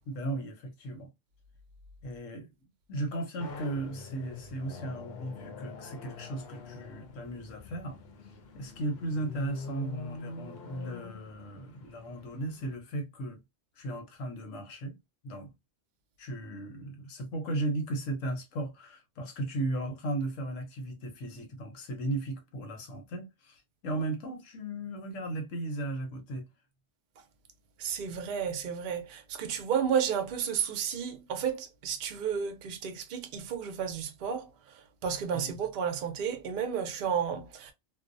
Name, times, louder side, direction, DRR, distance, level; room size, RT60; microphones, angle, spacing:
voice 1, 0.1-1.1 2.0-2.5 2.9-8.0 8.5-13.4 13.8-15.0 15.2-15.5 16.2-26.4 35.3-35.5, right 2 dB, 85° left, 1.1 m, -36 dB
sound 1, 3.4-12.7, left 4 dB, 60° left, 0.8 m, -45 dB
voice 2, 27.8-34.5 35.0-37.7, right 7 dB, 55° right, 0.6 m, -32 dB
2.5 x 2.0 x 2.5 m
omnidirectional pair, 1.3 m